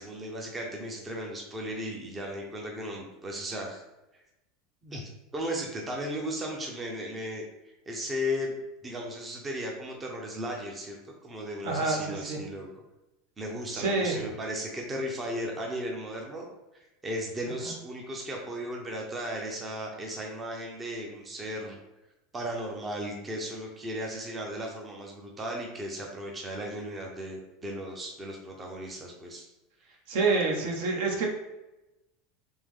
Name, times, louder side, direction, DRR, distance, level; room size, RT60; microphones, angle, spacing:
voice 1, 0.0-3.8 4.8-8.5 8.8-12.7 13.4-16.4 16.7-21.8 22.3-29.5, equal, 15° right, 0 dB, 0.6 m, -36 dB
voice 2, 11.6-12.4 13.7-14.2 30.1-31.3, right 3 dB, 65° right, 1 dB, 0.9 m, -27 dB
3.6 x 3.1 x 3.5 m, 0.97 s
supercardioid pair, 155°, 0 cm